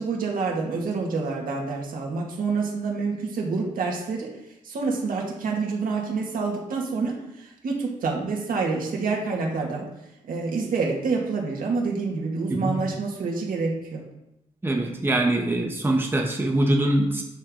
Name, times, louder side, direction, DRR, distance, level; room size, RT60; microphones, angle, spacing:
voice 1, 0.0-4.3 4.6-9.9 10.3-14.0, right 4 dB, 75° right, -1 dB, 2.1 m, -27 dB
voice 2, 14.6-17.2, right 1 dB, 15° right, 1 dB, 1.1 m, -23 dB
9.1 x 6.8 x 3.9 m, 0.87 s
wide cardioid pair, 115°, 14 cm